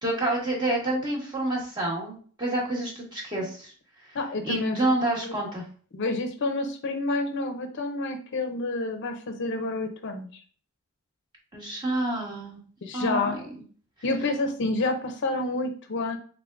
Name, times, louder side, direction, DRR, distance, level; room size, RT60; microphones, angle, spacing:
voice 1, 0.0-3.7 4.0-4.2 4.4-5.6 11.5-12.6 12.9-13.4, right 2 dB, 20° right, -3 dB, 1.3 m, -28 dB
voice 2, 4.1-4.8 5.2-5.3 5.9-10.3 12.8-13.4 14.0-16.2, left 2 dB, 55° left, 5 dB, 0.5 m, -29 dB
3.6 x 3.5 x 2.4 m, 0.44 s
head